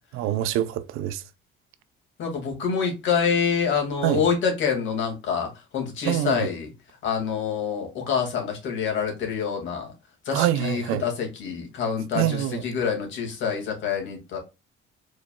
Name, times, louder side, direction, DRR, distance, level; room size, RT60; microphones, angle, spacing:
voice 1, 0.1-1.2 4.0-4.2 6.1-6.5 10.3-11.0 12.2-12.6, right 13 dB, 90° right, 0.6 m, -25 dB
voice 2, 2.2-6.7 7.0-9.9 10.3-14.4, left 6 dB, 65° left, 2.1 m, -26 dB
5.0 x 4.0 x 2.2 m
cardioid pair, 155°, 21 cm